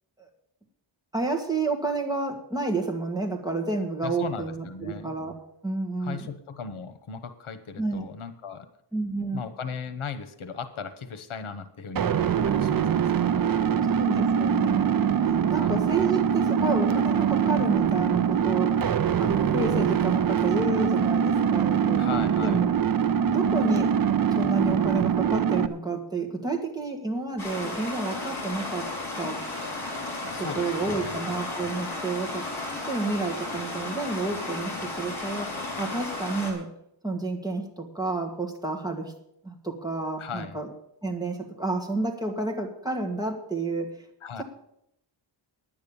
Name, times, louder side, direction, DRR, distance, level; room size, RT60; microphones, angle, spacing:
voice 1, 1.1-5.3 5.6-6.3 7.8-8.0 8.9-9.4 14.0-18.9 19.1-22.0 22.4-22.7 23.3-23.9 24.4-28.9 29.2-29.4 30.4-32.5 32.9-36.7 37.0-39.1 39.4-40.7 41.0-43.9, right 3 dB, 10° right, 1 dB, 1.7 m, -30 dB
voice 2, 4.0-5.1 6.0-8.7 9.3-14.1 15.5-15.8 22.0-22.6 30.3-31.3 40.2-40.6 44.2-44.4, left 6 dB, 80° left, 11 dB, 1.2 m, -38 dB
sound 1, 12.0-25.7, right 8 dB, 45° right, 0.6 m, -23 dB
Stream, 27.4-36.5, left 2 dB, 50° left, 4.1 m, -34 dB
10.5 x 8.9 x 7.0 m, 0.77 s
wide cardioid pair, 155°, 48 cm